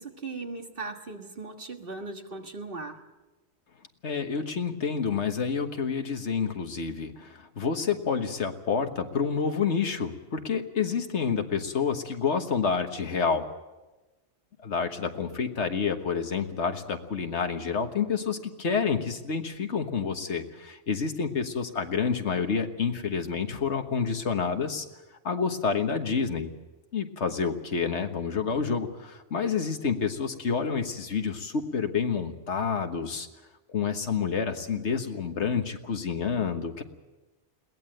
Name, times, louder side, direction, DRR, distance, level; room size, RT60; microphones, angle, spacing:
voice 1, 0.0-3.0, right 3 dB, 50° right, 4 dB, 1.9 m, -38 dB
voice 2, 4.0-13.5 14.6-24.9 25.2-26.5 26.9-33.3 33.7-36.8, left 6 dB, 70° left, 6 dB, 1.6 m, -28 dB
22.0 x 18.0 x 7.8 m, 1.1 s
omnidirectional pair, 1.2 m